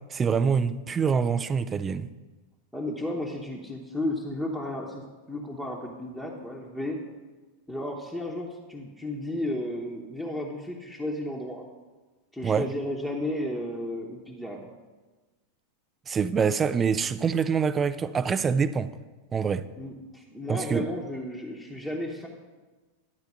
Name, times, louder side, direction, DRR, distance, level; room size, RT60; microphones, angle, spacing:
voice 1, 0.1-2.1 12.4-12.7 16.1-18.9 19.3-19.6 20.5-20.9, right 6 dB, 20° right, 14 dB, 0.4 m, -25 dB
voice 2, 2.7-7.0 7.7-11.6 12.3-14.7 19.8-22.3, left 1 dB, ahead, -3 dB, 1.0 m, -33 dB
11.0 x 4.5 x 6.6 m, 1.3 s
figure-of-eight pair, 90°, 0 cm